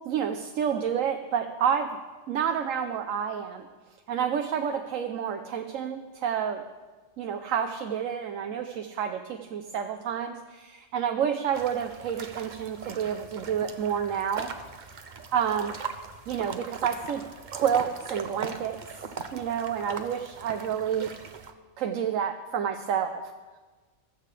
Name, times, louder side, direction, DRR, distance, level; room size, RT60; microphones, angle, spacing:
voice 1, 0.0-2.0 2.3-3.7 4.1-6.6 7.2-14.5 15.3-15.8 16.3-17.2 17.5-18.8 19.3-21.1 21.8-23.2, right 8 dB, 85° right, 5 dB, 1.1 m, -29 dB
sound 1, 11.5-21.5, right 5 dB, 40° right, 0.8 m, -40 dB
15.0 x 14.0 x 3.3 m, 1.3 s
omnidirectional pair, 1.3 m